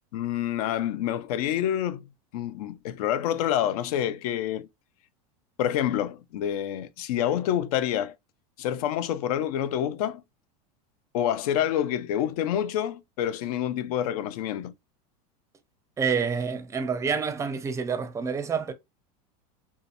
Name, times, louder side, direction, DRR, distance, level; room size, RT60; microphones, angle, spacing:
voice 1, 0.1-4.7 5.6-8.1 8.6-10.2 11.1-14.7, left 10 dB, 75° left, 0.4 m, -27 dB
voice 2, 16.0-18.7, right 6 dB, 15° right, 0.4 m, -28 dB
2.7 x 2.2 x 2.5 m
supercardioid pair, 115°, 20 cm